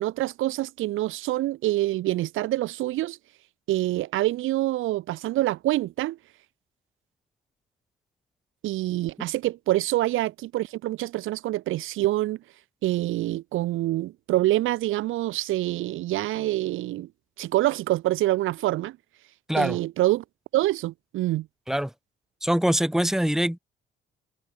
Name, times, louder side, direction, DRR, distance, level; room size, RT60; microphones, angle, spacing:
voice 1, 0.0-3.2 3.7-6.2 8.6-12.4 12.8-17.1 17.4-19.0 19.6-20.2 20.5-21.5, right 16 dB, 90° right, 2.1 m, -26 dB
voice 2, 22.4-23.6, equal, ahead, 2.0 m, -23 dB
cardioid pair, 90°, 20 cm